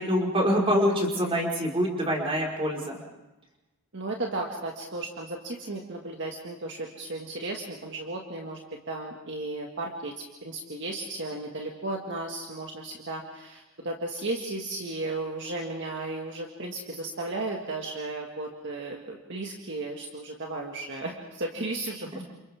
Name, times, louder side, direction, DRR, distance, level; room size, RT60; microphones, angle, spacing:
voice 1, 0.0-3.0, equal, 25° right, -2 dB, 4.8 m, -25 dB
voice 2, 3.9-8.6 8.9-10.1 10.4-22.2, right 2 dB, 55° right, 0 dB, 2.0 m, -34 dB
30.0 x 27.5 x 3.7 m, 1.0 s
head